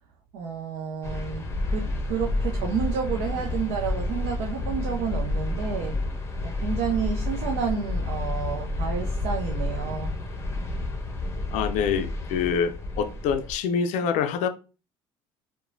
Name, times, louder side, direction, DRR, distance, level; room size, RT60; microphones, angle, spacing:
voice 1, 0.3-6.0 6.4-10.1, right 6 dB, 70° right, 0.5 m, -30 dB
sound 1, 1.0-13.5, left 2 dB, 20° left, 0.7 m, -30 dB
voice 2, 11.5-14.5, left 7 dB, 65° left, 0.4 m, -26 dB
2.9 x 2.1 x 2.5 m
hypercardioid pair, 75°, 13 cm